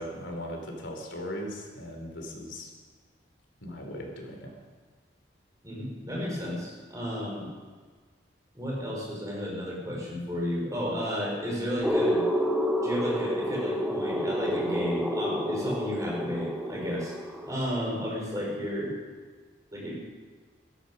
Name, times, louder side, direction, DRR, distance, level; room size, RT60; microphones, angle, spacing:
voice 1, 0.0-2.7 3.6-4.6, equal, 75° left, 2 dB, 3.2 m, -38 dB
voice 2, 5.6-7.5 8.5-12.2 12.8-17.1 17.5-19.0 19.7-19.9, equal, 15° right, -3 dB, 4.6 m, -32 dB
sound 1, 11.8-17.6, equal, ahead, 1.1 m, -29 dB
16.5 x 13.0 x 5.4 m, 1.5 s
head